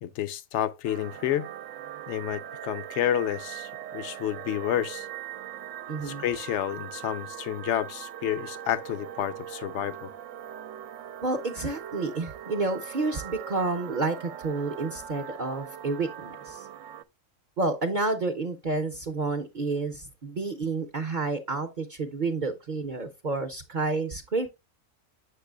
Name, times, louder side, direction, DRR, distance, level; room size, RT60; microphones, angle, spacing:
voice 1, 0.0-1.5 2.1-5.1 6.0-10.1, left 11 dB, 65° left, 0.9 m, -30 dB
sound 1, 0.8-17.0, right 10 dB, 75° right, 0.9 m, -41 dB
voice 2, 5.9-6.2 11.2-16.7 17.6-24.5, right 3 dB, 45° right, 0.7 m, -30 dB
7.2 x 6.7 x 2.2 m
omnidirectional pair, 1.4 m